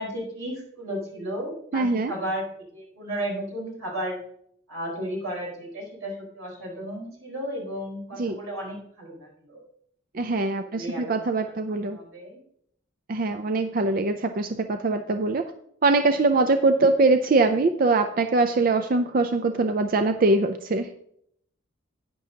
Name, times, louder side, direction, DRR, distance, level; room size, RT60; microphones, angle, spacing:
voice 1, 0.0-4.2 4.7-9.6 10.7-11.2 11.4-11.6 11.9-12.4, equal, 85° right, -1 dB, 4.5 m, -34 dB
voice 2, 1.7-2.1 8.2-8.4 10.1-12.0 13.1-15.5 15.8-20.9, right 3 dB, 45° right, 8 dB, 0.4 m, -22 dB
11.0 x 9.7 x 2.8 m, 0.68 s
head